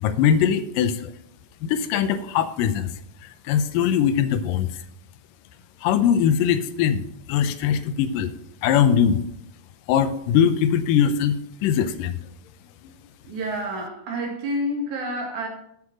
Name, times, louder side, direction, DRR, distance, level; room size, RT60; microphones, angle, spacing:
voice 1, 0.0-1.1 1.6-2.9 3.2-4.7 5.8-7.0 7.3-8.3 8.6-9.2 9.9-12.2, left 8 dB, 85° left, 11 dB, 2.3 m, -21 dB
voice 2, 13.2-15.5, equal, 65° right, 1 dB, 3.3 m, -29 dB
8.7 x 8.1 x 5.1 m, 0.75 s
omnidirectional pair, 3.9 m